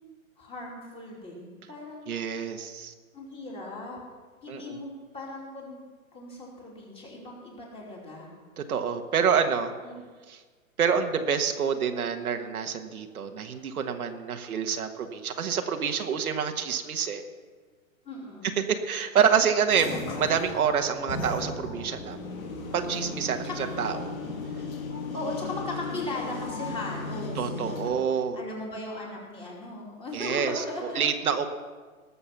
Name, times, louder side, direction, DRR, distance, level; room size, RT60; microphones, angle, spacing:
voice 1, 0.4-2.1 3.1-4.0 4.4-5.8 6.1-8.3 9.2-9.4 9.8-10.0 18.0-18.5 23.4-23.6 25.1-28.1 28.3-31.0, left 1 dB, 15° left, -2 dB, 2.8 m, -38 dB
voice 2, 2.1-2.9 4.5-4.8 8.6-9.7 10.3-10.4 10.8-17.2 18.6-22.2 22.7-24.1 27.4-28.4 30.1-30.6 30.9-31.5, right 7 dB, 90° right, 6 dB, 1.4 m, -27 dB
sound 1, 19.7-27.9, left 3 dB, 70° left, 2.6 m, -36 dB
18.5 x 7.0 x 5.9 m, 1.4 s
hypercardioid pair, 145°, 42 cm